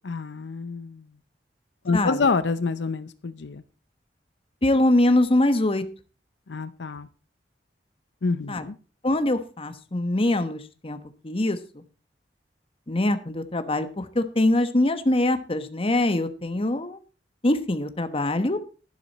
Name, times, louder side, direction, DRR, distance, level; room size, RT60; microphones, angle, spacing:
voice 1, 0.0-1.1 1.8-3.6 6.5-7.1 8.2-8.8, left 4 dB, 75° left, 14 dB, 0.6 m, -27 dB
voice 2, 4.6-5.8 8.5-8.7 9.0-11.0 11.2-11.8 12.9-17.0 17.4-18.6, left 1 dB, 30° left, 10 dB, 1.1 m, -23 dB
11.5 x 11.0 x 4.1 m, 0.35 s
head